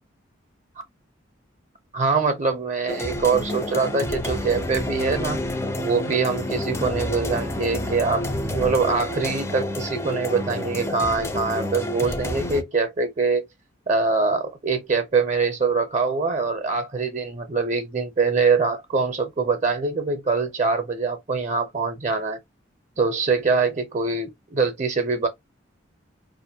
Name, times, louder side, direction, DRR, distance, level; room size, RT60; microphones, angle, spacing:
voice 1, 1.9-5.4 5.8-13.5 13.9-22.4 23.0-25.3, right 4 dB, 35° right, 0.6 m, -24 dB
sound 1, 2.9-12.6, left 1 dB, 15° left, 0.4 m, -29 dB
4.7 x 2.5 x 2.8 m
head